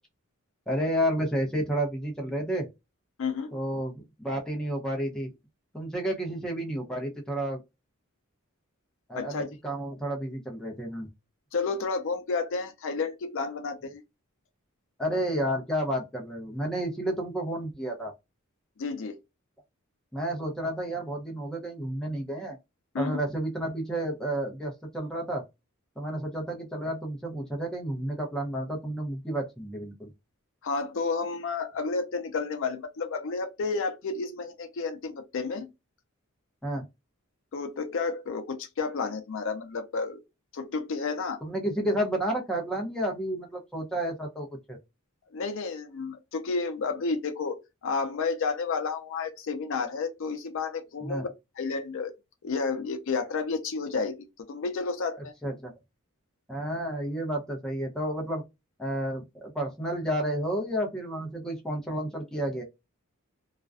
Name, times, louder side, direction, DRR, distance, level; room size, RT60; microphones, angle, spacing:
voice 1, 0.7-2.7 3.5-5.3 5.7-7.6 9.1-11.1 15.0-18.1 20.1-22.6 23.0-25.4 26.0-30.1 36.6-36.9 41.4-44.8 51.0-51.2 55.4-55.7 56.5-58.4 58.8-62.6, right 1 dB, 5° left, 0.6 m, -31 dB
voice 2, 3.2-3.5 9.1-9.5 11.5-14.0 18.8-19.2 22.9-23.2 30.6-35.7 37.5-40.2 40.5-41.4 45.3-51.3 51.6-52.1 52.4-55.3, left 4 dB, 65° left, 0.5 m, -31 dB
2.4 x 2.2 x 2.3 m
head